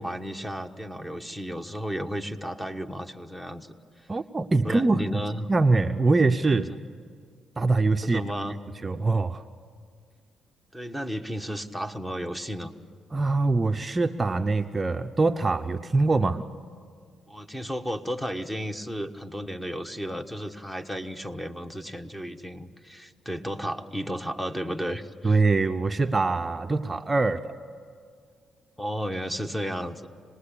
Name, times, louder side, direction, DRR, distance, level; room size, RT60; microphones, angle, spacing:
voice 1, 0.0-3.7 4.0-4.1 4.6-5.5 6.7-6.8 8.0-8.6 10.7-12.7 17.3-25.4 28.8-30.1, equal, 5° left, 7 dB, 1.3 m, -33 dB
voice 2, 4.1-5.2 5.5-6.7 7.6-8.2 8.8-9.4 13.1-16.4 25.2-27.5, right 3 dB, 25° right, 7 dB, 0.7 m, -23 dB
26.5 x 20.0 x 8.6 m, 2.1 s
cardioid pair, 90°, 0 cm